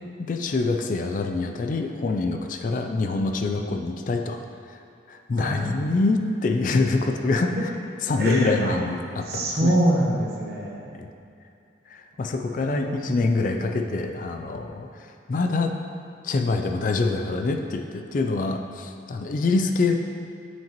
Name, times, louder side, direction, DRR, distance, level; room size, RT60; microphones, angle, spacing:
voice 1, 0.2-4.4 4.7-4.8 5.1-7.7 8.0-9.8 10.9-11.1 11.9-15.8 16.2-20.0, left 3 dB, 45° left, 5 dB, 0.3 m, -25 dB
voice 2, 5.4-5.7 8.2-8.8 9.3-10.8 12.5-13.2, right 1 dB, 55° right, -3 dB, 1.0 m, -25 dB
7.2 x 5.8 x 3.0 m, 2.5 s
head